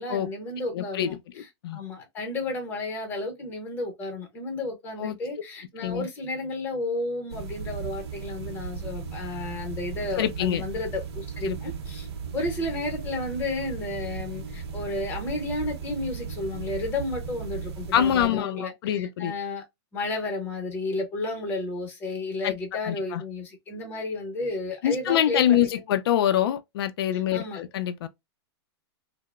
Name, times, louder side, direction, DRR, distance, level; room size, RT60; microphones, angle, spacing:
voice 1, 0.0-12.1 12.3-19.6 19.9-25.7 27.1-27.6, left 2 dB, 15° left, 0.7 m, -32 dB
voice 2, 0.7-1.2 1.6-1.8 5.0-5.2 5.8-6.1 10.2-10.6 11.4-11.6 17.9-19.3 22.4-22.5 22.8-23.2 24.8-28.1, left 10 dB, 60° left, 0.4 m, -25 dB
sound 1, 7.3-18.3, right 6 dB, 70° right, 0.7 m, -36 dB
2.8 x 2.0 x 2.2 m
supercardioid pair, 170°, 14 cm